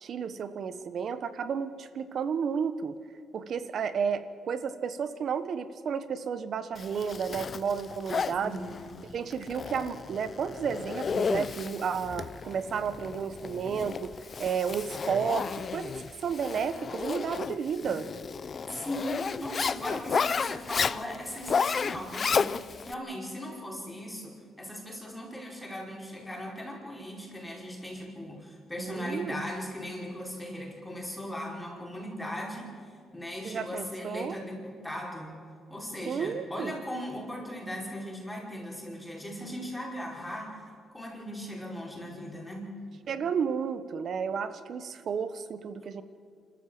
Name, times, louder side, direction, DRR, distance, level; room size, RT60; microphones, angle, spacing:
voice 1, 0.0-3.0 3.3-8.6 9.1-14.1 14.4-18.1 28.8-29.4 33.4-34.4 36.1-36.8 43.1-46.0, right 6 dB, 60° right, 12 dB, 1.2 m, -32 dB
Zipper (clothing), 6.8-22.9, left 6 dB, 45° left, 0.5 m, -33 dB
voice 2, 8.4-9.1 18.7-35.4 35.7-40.7 40.9-42.7, equal, 10° left, -3 dB, 5.1 m, -38 dB
26.5 x 14.0 x 7.8 m, 2.3 s
cardioid pair, 90°, 0 cm